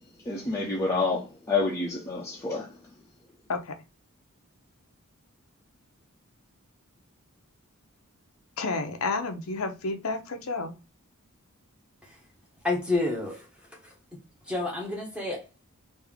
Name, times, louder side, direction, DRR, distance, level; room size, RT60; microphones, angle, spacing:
voice 1, 0.3-2.7, left 3 dB, 15° left, 0.7 m, -28 dB
voice 2, 8.6-10.7, left 3 dB, 65° left, 0.6 m, -30 dB
voice 3, 12.6-13.5 13.8-13.9 14.5-15.6, left 2 dB, 5° right, 1.2 m, -29 dB
3.4 x 2.7 x 3.4 m
head